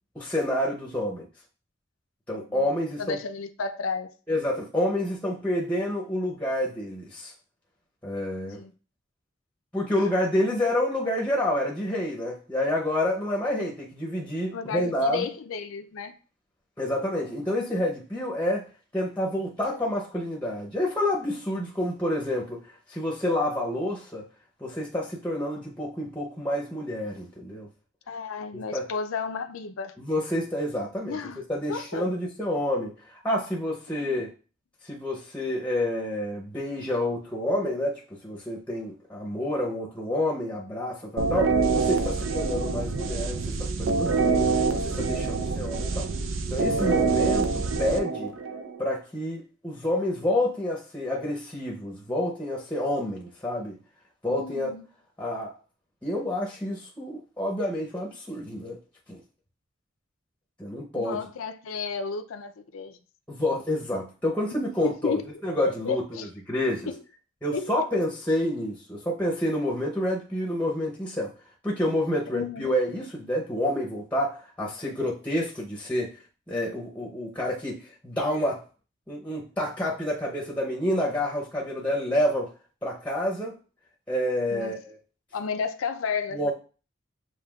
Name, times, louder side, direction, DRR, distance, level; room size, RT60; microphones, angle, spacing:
voice 1, 0.1-1.3 2.3-3.2 4.3-7.3 8.0-8.6 9.7-15.3 16.8-18.7 18.9-22.6 22.9-24.2 24.6-27.7 28.5-28.9 30.0-31.2 31.5-34.3 34.8-46.1 46.5-48.3 48.8-53.8 54.2-54.7 55.2-55.5 56.0-58.8 59.1-59.2 60.6-61.2 63.3-66.9 67.4-71.3 71.6-76.2 76.5-78.6 79.1-82.5 82.8-83.5 84.1-85.0 86.3-86.5, left 1 dB, 5° left, 0.7 m, -28 dB
voice 2, 3.0-4.1 8.5-8.7 14.5-16.2 28.1-29.9 31.1-31.4 31.7-32.1 33.9-34.3 54.4-54.9 61.0-63.0 64.8-65.2 65.6-66.3 66.9-67.0 67.5-67.7 72.3-72.7 84.5-84.7 85.3-86.5, left 5 dB, 85° left, 0.5 m, -32 dB
sound 1, 41.2-48.8, right 4 dB, 75° right, 0.5 m, -26 dB
7.0 x 2.8 x 2.3 m
head